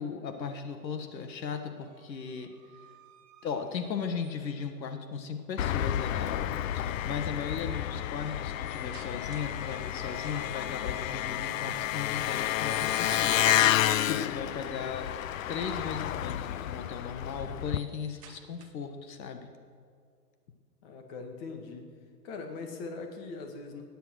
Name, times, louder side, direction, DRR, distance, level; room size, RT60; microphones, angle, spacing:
voice 1, 0.0-2.5 3.4-15.1 15.5-19.5, left 6 dB, 80° left, 7 dB, 1.5 m, -37 dB
sound 1, 1.8-4.7 6.5-6.8 7.2-9.6 9.9-10.5 12.0-13.9 16.2-19.0, right 12 dB, 20° right, 0.6 m, -54 dB
Engine, 5.6-17.8, left 12 dB, 55° left, 0.5 m, -30 dB
voice 2, 20.8-21.9 22.2-23.8, left 4 dB, 35° left, 4 dB, 1.9 m, -41 dB
17.5 x 10.0 x 6.3 m, 2.3 s
hypercardioid pair, 150°, 50 cm